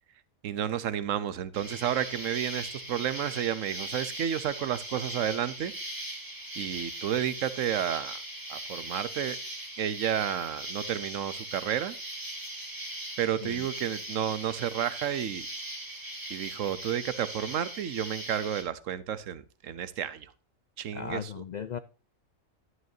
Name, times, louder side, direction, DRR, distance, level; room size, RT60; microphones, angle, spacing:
voice 1, 0.4-5.7 6.6-8.2 8.5-9.4 9.8-12.0 13.2-15.5 16.3-20.3 20.8-21.3, right 10 dB, 75° right, 1.1 m, -31 dB
Insect, 1.5-18.6, right 1 dB, 15° right, 1.9 m, -39 dB
voice 2, 20.9-21.8, left 7 dB, 70° left, 0.4 m, -37 dB
11.0 x 9.2 x 2.7 m
omnidirectional pair, 1.4 m